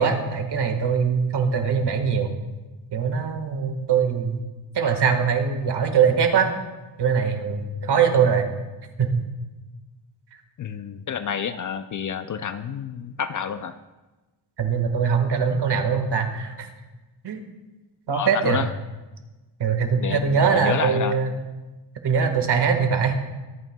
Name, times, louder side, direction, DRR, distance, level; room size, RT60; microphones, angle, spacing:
voice 1, 0.0-2.3 2.9-4.4 4.7-6.5 7.0-8.5 9.0-9.2 14.6-16.7 17.2-17.5 18.1-18.6 19.6-21.3 22.0-23.2, right 6 dB, 60° right, 5 dB, 1.6 m, -22 dB
voice 2, 10.6-13.8 18.1-18.7 20.0-21.2, left 7 dB, 45° left, 11 dB, 0.5 m, -29 dB
24.0 x 9.0 x 2.2 m, 1.2 s
wide cardioid pair, 140°, 46 cm